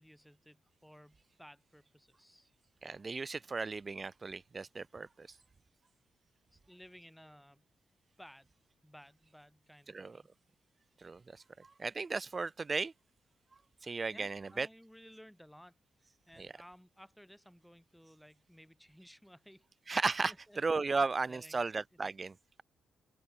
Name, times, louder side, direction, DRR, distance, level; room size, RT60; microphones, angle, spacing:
voice 1, 0.0-2.5 6.5-7.6 8.2-8.5 8.8-10.3 14.1-15.7 16.0-20.0 20.3-20.6 20.9-21.6, equal, ahead, 5.5 m, -57 dB
voice 2, 2.8-5.4 9.9-10.2 11.0-12.9 13.8-14.7 16.4-16.5 19.9-22.6, right 4 dB, 35° right, 0.6 m, -36 dB
open air
cardioid pair, 60°, 0 cm